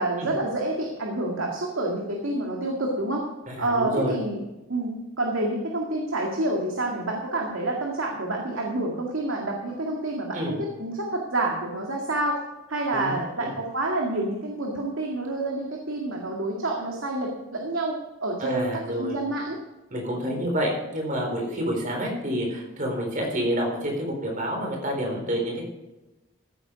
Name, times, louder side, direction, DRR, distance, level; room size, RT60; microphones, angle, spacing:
voice 1, 0.0-3.2 3.6-4.4 4.7-12.4 12.7-19.6 20.2-20.4, right 2 dB, 85° right, 0 dB, 2.1 m, -28 dB
voice 2, 3.5-4.2 10.3-10.6 12.9-13.5 18.4-19.2 19.9-25.6, equal, 40° right, 1 dB, 4.1 m, -28 dB
15.0 x 8.9 x 5.1 m, 1.0 s
head